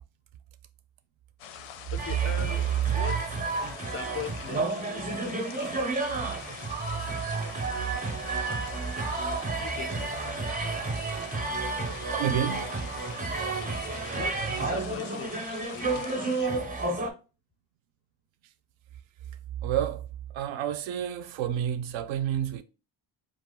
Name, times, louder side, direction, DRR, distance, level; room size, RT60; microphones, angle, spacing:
sound 1, 1.4-16.4, left 9 dB, 85° left, 0.6 m, -45 dB
voice 1, 1.9-3.3 3.6-5.8 9.5-10.2 14.1-16.7, left 7 dB, 30° left, 0.4 m, -41 dB
sound 2, 2.0-17.1, right 3 dB, 20° right, 0.5 m, -31 dB
voice 2, 12.0-12.8 19.6-22.6, right 10 dB, 70° right, 0.5 m, -30 dB
2.4 x 2.3 x 3.5 m
cardioid pair, 120°, 49 cm